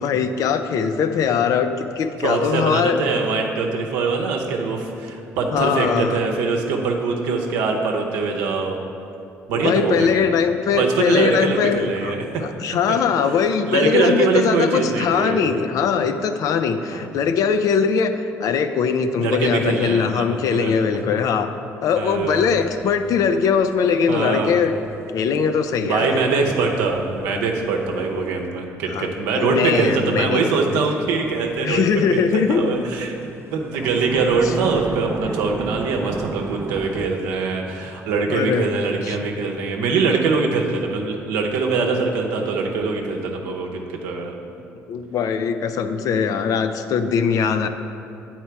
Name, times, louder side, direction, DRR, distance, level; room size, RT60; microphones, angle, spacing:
voice 1, 0.0-3.0 5.5-6.2 9.5-12.1 12.4-18.1 18.4-21.5 21.8-24.7 25.1-26.2 28.9-30.4 30.7-30.8 31.6-32.8 38.3-38.7 39.0-39.3 44.9-47.7, left 6 dB, 65° left, 9 dB, 0.4 m, -21 dB
voice 2, 2.2-8.8 9.5-10.3 10.7-12.5 13.7-15.5 16.9-17.1 19.2-20.7 22.0-22.7 24.1-24.5 25.8-33.2 33.5-44.3, right 4 dB, 85° right, 1 dB, 0.8 m, -23 dB
sound 1, 22.1-28.5 31.3-37.1, right 4 dB, 40° right, 0.4 m, -35 dB
8.3 x 4.4 x 4.5 m, 2.7 s
supercardioid pair, 65°, 6 cm